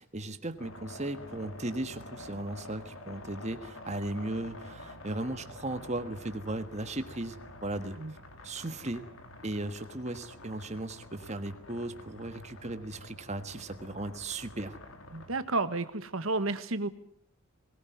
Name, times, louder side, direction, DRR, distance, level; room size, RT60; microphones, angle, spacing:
voice 1, 0.0-7.4 7.6-8.0 8.4-9.0 9.4-14.8, right 2 dB, 35° right, 9 dB, 1.5 m, -36 dB
sound 1, 0.6-15.4, left 2 dB, 75° left, 3.6 m, -48 dB
voice 2, 15.1-16.9, right 3 dB, 75° right, 11 dB, 1.5 m, -31 dB
21.5 x 19.0 x 9.4 m, 0.64 s
head